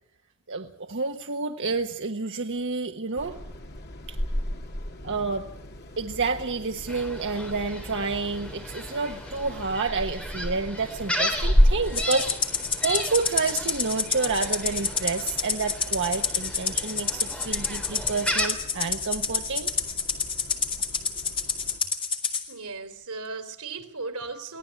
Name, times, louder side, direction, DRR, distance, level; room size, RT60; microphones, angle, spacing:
voice 1, 0.5-3.4 4.1-4.2 5.0-5.5 6.0-12.3 12.8-19.7, right 4 dB, 55° right, 1.2 m, -29 dB
sound 1, 3.1-21.8, equal, 50° left, 2.5 m, -32 dB
Gull seagull, 6.9-18.5, equal, 5° left, 3.4 m, -35 dB
Rattle (instrument), 11.9-22.4, left 5 dB, 25° left, 2.5 m, -28 dB
voice 2, 22.5-24.6, right 4 dB, 85° right, 3.3 m, -36 dB
23.5 x 17.0 x 8.2 m
head